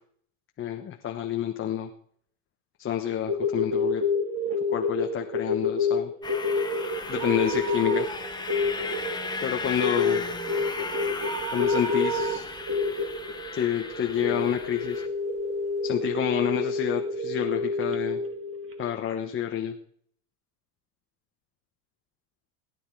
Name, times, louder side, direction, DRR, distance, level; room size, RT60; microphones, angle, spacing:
voice 1, 0.6-1.9 2.8-4.0 4.7-6.1 7.1-8.1 9.4-10.2 11.5-12.4 13.5-15.0 15.8-18.2 18.8-19.7, left 10 dB, 25° left, 3 dB, 1.2 m, -28 dB
sound 1, 3.3-18.9, left 3 dB, 25° right, 2.4 m, -28 dB
sound 2, 6.2-15.1, left 4 dB, 10° left, 1.3 m, -36 dB
sound 3, 7.2-8.7 9.0-9.1 9.6-14.0 14.5-14.6 15.4-15.5 15.7-15.8, right 8 dB, 55° right, 1.7 m, -37 dB
19.5 x 10.0 x 4.8 m, 0.62 s
supercardioid pair, 120°, 46 cm